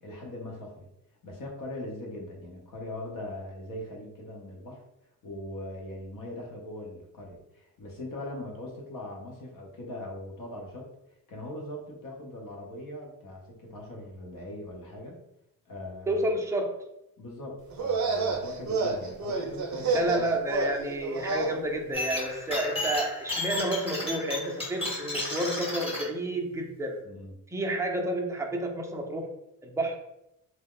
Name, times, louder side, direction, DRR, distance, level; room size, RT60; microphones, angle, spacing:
voice 1, 0.0-0.9 1.2-4.8 5.2-10.9 11.3-15.2 15.7-16.4 17.2-20.3 27.0-27.4, left 1 dB, 70° left, 0 dB, 0.8 m, -40 dB
voice 2, 16.1-16.7 19.9-27.0 27.5-29.3 29.6-30.0, right 1 dB, 10° right, 1 dB, 0.4 m, -30 dB
sound 1, 17.7-21.5, right 4 dB, 55° right, 0.6 m, -29 dB
sound 2, 21.9-26.0, left 2 dB, 15° left, 0.8 m, -33 dB
2.3 x 2.1 x 3.6 m, 0.86 s
cardioid pair, 100°, 34 cm